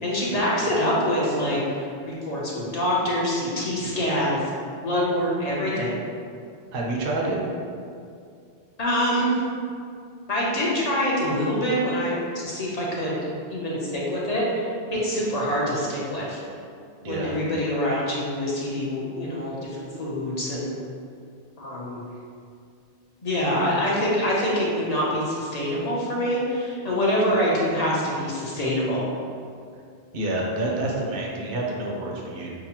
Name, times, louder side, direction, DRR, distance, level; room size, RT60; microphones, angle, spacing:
voice 1, 0.0-4.4 4.8-5.9 8.8-9.3 10.3-13.2 13.5-16.4 17.1-20.7 21.6-22.0 23.2-29.0, equal, 45° left, -6 dB, 0.7 m, -25 dB
voice 2, 6.7-7.4 17.0-17.3 30.1-32.5, right 2 dB, 60° right, -1 dB, 0.8 m, -28 dB
5.9 x 2.0 x 2.8 m, 2.3 s
omnidirectional pair, 1.1 m